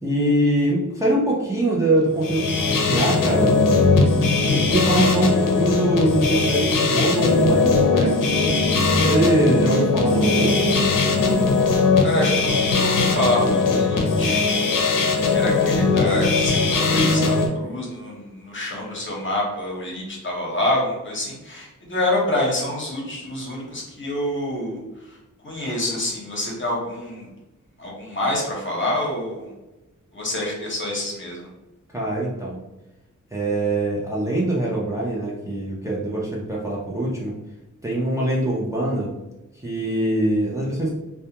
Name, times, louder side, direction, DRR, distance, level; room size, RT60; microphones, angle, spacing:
voice 1, 0.0-3.6 4.5-8.7 9.0-11.0 31.9-32.6 33.3-37.3 37.8-39.1 39.6-40.9, right 1 dB, 10° right, -5 dB, 0.5 m, -23 dB
sound 1, 2.1-17.5, left 3 dB, 85° left, 0.5 m, -19 dB
voice 2, 11.7-14.6 15.3-24.8 25.4-27.3 27.8-29.5 30.1-31.5, left 1 dB, 40° left, -3 dB, 0.8 m, -27 dB
2.3 x 2.2 x 2.8 m, 0.99 s
wide cardioid pair, 95°, 31 cm